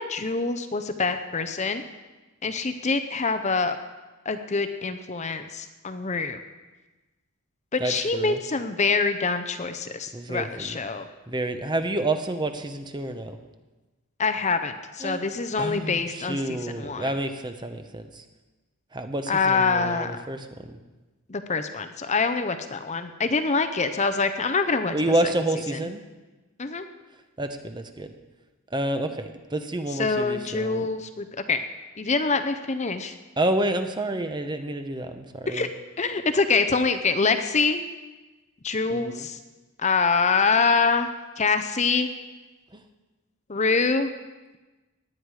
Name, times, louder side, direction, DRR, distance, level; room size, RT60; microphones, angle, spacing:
voice 1, 0.0-1.8 2.4-3.8 4.3-6.4 7.7-11.1 14.2-17.1 19.3-20.2 21.3-24.9 25.2-25.3 26.6-26.9 29.9-31.6 32.0-33.2 35.5-35.7 36.0-37.8 38.6-39.4 39.8-42.1 43.5-44.1, left 4 dB, 30° left, 9 dB, 0.7 m, -25 dB
voice 2, 7.8-8.4 10.1-10.8 11.3-13.4 15.0-15.2 15.6-18.2 18.9-20.5 24.9-26.0 27.4-28.1 28.7-30.9 33.4-35.7 38.9-39.3 42.7-42.8, right 1 dB, 20° right, 7 dB, 0.9 m, -29 dB
18.0 x 10.0 x 4.9 m, 1.2 s
head